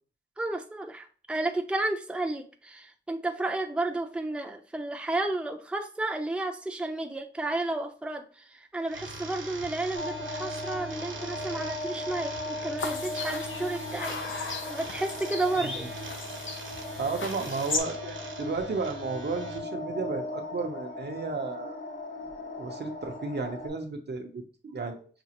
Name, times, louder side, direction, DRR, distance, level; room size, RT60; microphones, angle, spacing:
voice 1, 0.4-14.2 14.7-15.9, right 2 dB, 5° right, 3 dB, 0.5 m, -32 dB
sound 1, 8.9-19.6, right 1 dB, 75° right, 1.0 m, -42 dB
sound 2, 9.9-23.7, left 2 dB, 65° left, 1.9 m, -38 dB
sound 3, 12.8-17.8, left 4 dB, 85° left, 0.6 m, -36 dB
voice 2, 17.0-21.8 22.6-25.1, right 4 dB, 60° right, 4 dB, 0.7 m, -33 dB
5.9 x 2.4 x 2.9 m, 0.40 s
wide cardioid pair, 70°, 20 cm